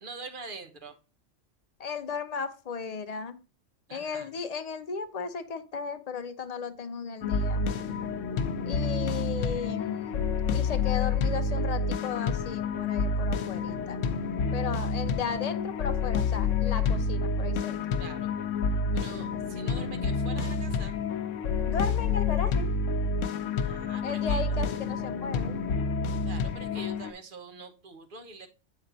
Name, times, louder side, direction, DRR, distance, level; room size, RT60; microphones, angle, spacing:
voice 1, 0.0-0.9 3.9-4.3 8.2-8.4 18.0-18.6 18.9-21.0 23.6-24.7 26.2-28.5, right 4 dB, 45° right, 7 dB, 1.0 m, -45 dB
voice 2, 1.8-3.4 3.9-7.6 8.6-10.2 10.5-14.0 14.5-17.8 21.6-22.7 24.0-25.6, left 5 dB, 40° left, 8 dB, 0.6 m, -35 dB
sound 1, 7.2-27.1, left 4 dB, 85° left, 1.0 m, -29 dB
8.0 x 4.2 x 3.9 m, 0.33 s
omnidirectional pair, 1.3 m